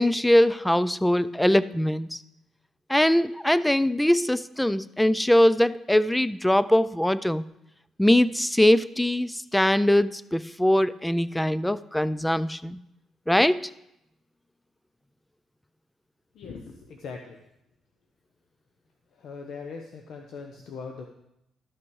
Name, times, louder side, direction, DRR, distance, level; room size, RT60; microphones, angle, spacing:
voice 1, 0.0-2.2 2.9-7.4 8.0-12.8 13.3-13.7, left 1 dB, 5° left, 17 dB, 0.3 m, -22 dB
voice 2, 16.3-17.4 19.2-21.1, left 5 dB, 70° left, 3 dB, 0.9 m, -40 dB
13.0 x 6.0 x 4.7 m, 0.84 s
cardioid pair, 90°, 0 cm